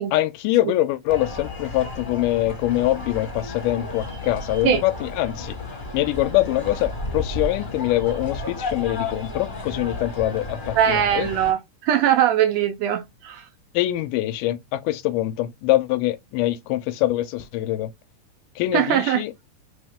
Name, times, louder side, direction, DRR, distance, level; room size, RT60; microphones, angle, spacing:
voice 1, 0.1-5.6 5.9-11.3 13.7-17.9 18.6-19.3, left 15 dB, 90° left, 2.2 m, -24 dB
sound 1, 1.1-11.5, left 2 dB, 35° left, 0.8 m, -33 dB
voice 2, 10.8-13.5 18.7-19.2, right 10 dB, 80° right, 1.5 m, -21 dB
4.9 x 3.1 x 3.5 m
omnidirectional pair, 3.6 m